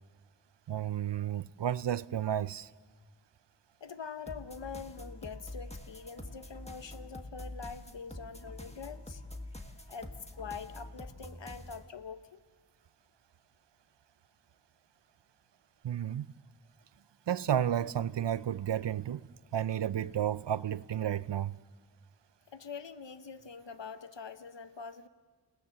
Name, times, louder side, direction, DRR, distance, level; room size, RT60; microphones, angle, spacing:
voice 1, 0.7-2.7 15.8-16.3 17.3-19.3 19.5-21.6, right 10 dB, 70° right, 0.6 m, -32 dB
voice 2, 3.8-9.4 9.6-12.4 22.5-25.1, left 5 dB, 70° left, 1.0 m, -44 dB
sound 1, 4.3-11.9, left 1 dB, 15° left, 1.6 m, -46 dB
29.0 x 18.0 x 6.9 m
wide cardioid pair, 55°, 45 cm